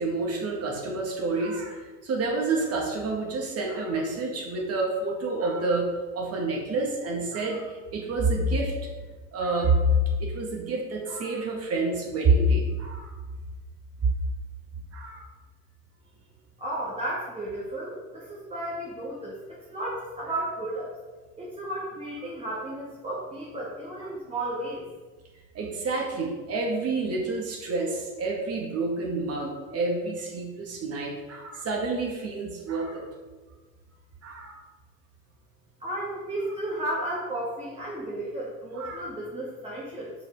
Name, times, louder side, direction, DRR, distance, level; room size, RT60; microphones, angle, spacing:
voice 1, 0.0-5.9 6.1-8.7 9.3-9.8 10.2-13.1 14.9-15.2 25.5-33.1 34.2-34.6 38.7-39.0, right 3 dB, 30° right, 0 dB, 2.0 m, -28 dB
voice 2, 16.6-19.4 19.7-20.9 21.4-24.8 35.8-40.1, right 1 dB, 10° right, -7 dB, 2.3 m, -33 dB
6.9 x 5.5 x 4.9 m, 1.3 s
figure-of-eight pair, 75°, 48 cm